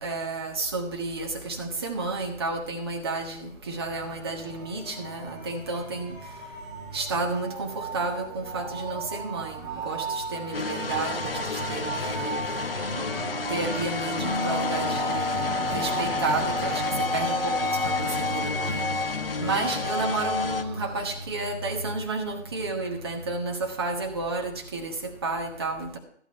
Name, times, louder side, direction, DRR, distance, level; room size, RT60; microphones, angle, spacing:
voice 1, 0.0-6.2 6.9-12.3 12.9-18.9 19.4-25.0 25.2-26.0, right 3 dB, 20° right, 4 dB, 1.0 m, -31 dB
sound 1, 3.8-21.3, right 3 dB, 35° right, 3.2 m, -37 dB
sound 2, 10.5-20.6, left 4 dB, 45° left, 0.8 m, -31 dB
Wind instrument woodwind instrument, 14.2-18.5, left 2 dB, 55° right, 5.6 m, -31 dB
13.0 x 8.4 x 4.3 m, 0.62 s
figure-of-eight pair, 145°, 39 cm